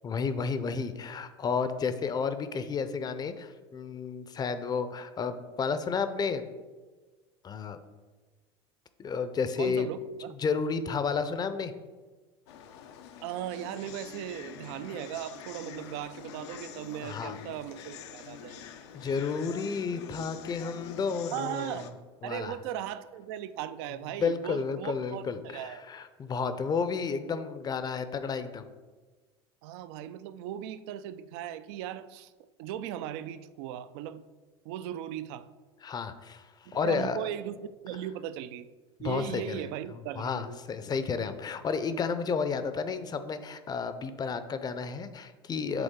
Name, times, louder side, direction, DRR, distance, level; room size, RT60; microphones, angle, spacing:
voice 1, 0.0-6.4 7.4-7.8 9.0-9.9 10.4-11.7 17.0-17.4 18.9-21.9 22.2-22.6 24.2-28.7 35.8-37.2 39.0-39.6 39.9-45.8, left 5 dB, 30° left, 0.6 m, -32 dB
voice 2, 9.6-10.3 13.2-18.6 21.3-25.8 29.6-32.3 32.6-34.2 34.6-35.5 36.8-38.7 39.0-40.6, right 11 dB, 65° right, 0.4 m, -38 dB
sound 1, 12.5-21.9, left 7 dB, 75° left, 0.6 m, -46 dB
8.0 x 3.8 x 3.7 m
hypercardioid pair, 90°, 14 cm